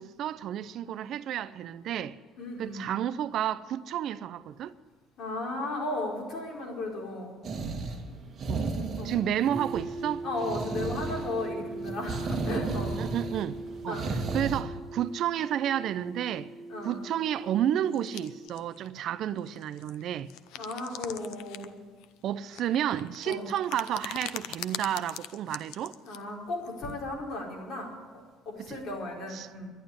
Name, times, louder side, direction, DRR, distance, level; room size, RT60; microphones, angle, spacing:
voice 1, 0.0-2.2 2.6-4.7 8.5-8.7 9.0-10.2 13.0-16.5 16.8-20.3 22.2-26.0 28.6-28.8 29.3-29.5, right 10 dB, 55° right, 0.5 m, -31 dB
voice 2, 2.4-2.9 5.2-7.3 9.0-9.1 10.2-13.0 13.9-14.0 16.7-17.0 20.6-21.7 23.2-23.5 26.0-29.7, left 2 dB, 45° left, 4.6 m, -35 dB
sound 1, 7.4-14.6, right 3 dB, 35° right, 2.1 m, -34 dB
sound 2, 9.5-18.5, right 2 dB, 15° left, 0.9 m, -40 dB
sound 3, 17.8-18.9 19.4-21.7 22.0-26.2 26.6-26.9, left 12 dB, 85° left, 0.7 m, -42 dB
11.5 x 11.5 x 9.6 m
cardioid pair, 145°, 0 cm